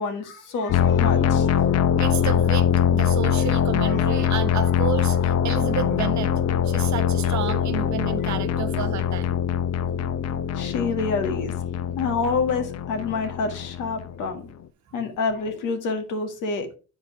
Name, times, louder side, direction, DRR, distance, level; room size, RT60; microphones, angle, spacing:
voice 1, 0.0-1.6 3.8-4.3 8.2-8.3 10.5-14.4 14.9-16.7, left 4 dB, 90° left, 1.8 m, -28 dB
sound 1, 0.7-14.3, left 8 dB, 55° left, 0.7 m, -23 dB
voice 2, 2.0-6.3 6.6-9.3, right 9 dB, 65° right, 1.1 m, -31 dB
8.0 x 4.9 x 4.6 m
cardioid pair, 90°, 30 cm